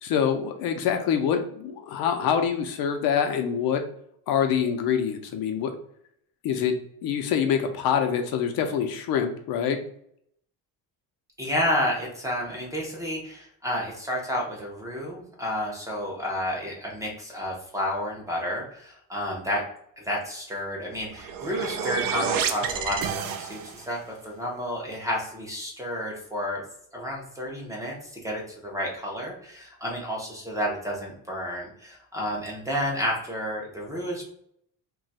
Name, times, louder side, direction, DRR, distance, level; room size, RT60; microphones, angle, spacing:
voice 1, 0.0-3.8 4.3-5.7 6.4-6.7 7.0-9.8, left 8 dB, 75° left, 5 dB, 0.6 m, -25 dB
voice 2, 11.4-19.6 20.0-24.0 24.2-26.6 26.9-28.0 28.2-34.2, equal, 10° right, -2 dB, 0.5 m, -31 dB
sound 1, 20.9-23.9, right 7 dB, 65° right, 0.5 m, -30 dB
2.4 x 2.3 x 3.9 m, 0.68 s
cardioid pair, 175°, 36 cm